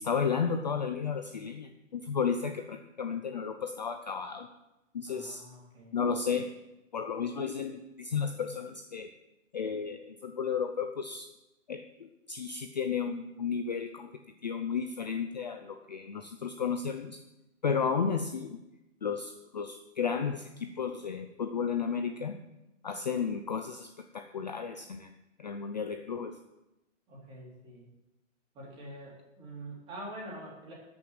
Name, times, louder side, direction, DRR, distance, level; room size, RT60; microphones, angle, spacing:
voice 1, 0.0-4.5 4.9-5.4 5.9-6.5 6.9-9.1 9.5-11.3 11.7-14.1 14.4-17.2 17.6-18.6 19.0-22.4 22.8-25.1 25.4-26.4, left 6 dB, 35° left, 7 dB, 0.5 m, -33 dB
voice 2, 5.1-6.0 27.1-27.9 28.5-30.7, right 1 dB, 15° right, -5 dB, 3.3 m, -45 dB
13.0 x 6.0 x 7.9 m, 0.96 s
hypercardioid pair, 170°, 38 cm